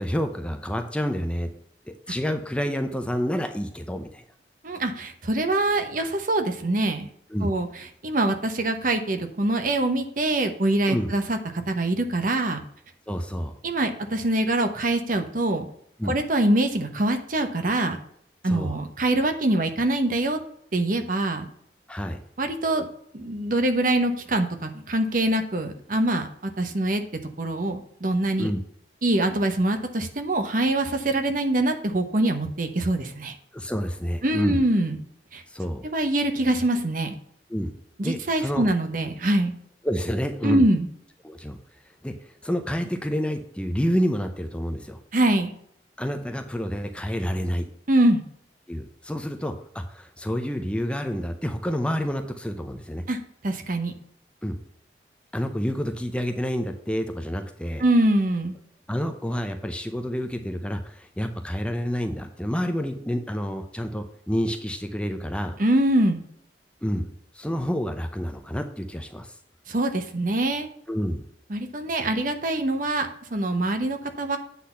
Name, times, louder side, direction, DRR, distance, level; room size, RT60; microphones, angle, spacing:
voice 1, 0.0-1.5 1.9-4.2 7.3-7.5 10.9-11.1 13.1-13.5 16.0-16.2 18.4-18.8 21.9-22.2 28.4-28.6 33.5-34.6 35.5-35.8 37.5-37.7 38.0-38.7 39.8-40.7 41.2-41.6 41.9-45.0 46.0-47.7 48.7-53.0 54.4-54.6 55.3-57.8 58.9-65.6 66.8-67.1 67.3-69.4 70.9-71.2, equal, 5° left, 6 dB, 0.6 m, -28 dB
voice 2, 4.6-7.1 7.4-7.7 8.0-11.4 11.7-12.6 13.6-15.7 16.0-18.0 18.4-20.4 20.7-21.5 22.4-22.9 23.1-27.0 27.4-28.5 29.0-33.3 34.2-35.0 35.3-35.4 35.9-37.2 38.0-39.5 40.4-40.9 45.1-45.5 47.9-48.2 53.1-53.2 53.4-53.9 57.8-58.6 65.6-66.2 69.7-70.7 71.5-74.4, right 1 dB, 50° right, 6 dB, 1.0 m, -24 dB
8.4 x 4.1 x 5.6 m, 0.67 s
head